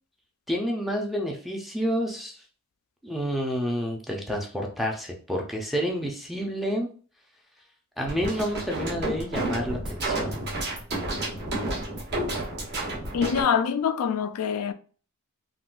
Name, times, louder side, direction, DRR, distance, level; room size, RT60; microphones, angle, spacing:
voice 1, 0.5-2.4 3.0-6.9 8.0-10.5, equal, ahead, 0.4 m, -29 dB
sound 1, 8.0-13.4, right 2 dB, 50° right, 1.1 m, -31 dB
voice 2, 13.1-14.7, left 7 dB, 70° left, 0.3 m, -25 dB
3.6 x 2.2 x 2.4 m
head